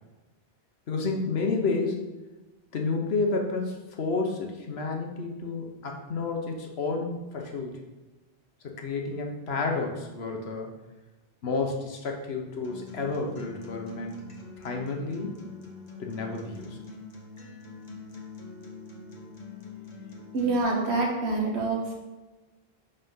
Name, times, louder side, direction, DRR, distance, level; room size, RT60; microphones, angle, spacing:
voice 1, 0.9-2.0 2.7-7.8 8.8-10.7 11.4-14.2 14.6-15.3 16.0-16.8, left 3 dB, 75° left, 2 dB, 1.2 m, -30 dB
Acoustic guitar, 12.6-20.6, left 4 dB, 40° left, 1.0 m, -44 dB
voice 2, 20.3-21.9, right 3 dB, 90° right, -1 dB, 1.5 m, -26 dB
5.6 x 4.1 x 5.5 m, 1.1 s
omnidirectional pair, 1.1 m